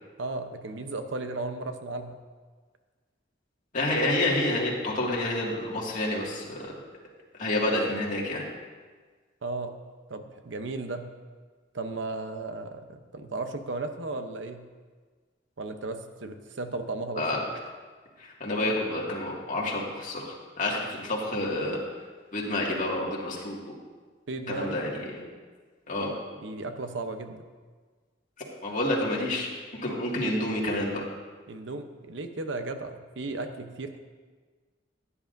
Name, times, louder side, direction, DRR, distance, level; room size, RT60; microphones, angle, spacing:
voice 1, 0.2-2.2 9.4-9.8 10.1-11.1 11.7-14.6 15.6-17.3 24.3-24.8 26.4-27.4 31.5-34.0, right 2 dB, 75° right, 7 dB, 0.8 m, -35 dB
voice 2, 3.7-6.7 7.4-8.5 17.2-17.4 18.2-21.8 22.3-23.7 24.5-25.2 25.9-26.1 28.6-31.0, left 1 dB, 45° left, -3 dB, 2.1 m, -29 dB
15.5 x 9.8 x 2.6 m, 1.5 s
head